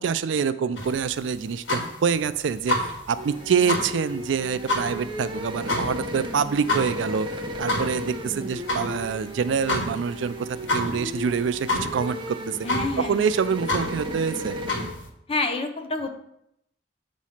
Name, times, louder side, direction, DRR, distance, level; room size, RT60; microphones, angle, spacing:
voice 1, 0.0-7.3 7.6-12.6 13.0-14.7, right 6 dB, 85° right, 13 dB, 0.4 m, -26 dB
sound 1, 0.7-15.1, left 1 dB, 85° left, 1.5 m, -30 dB
sound 2, 3.2-14.9, equal, 25° right, 0.6 m, -35 dB
voice 2, 12.6-13.3 15.3-16.1, left 2 dB, 30° left, 6 dB, 0.6 m, -28 dB
7.3 x 3.1 x 5.6 m, 0.79 s
head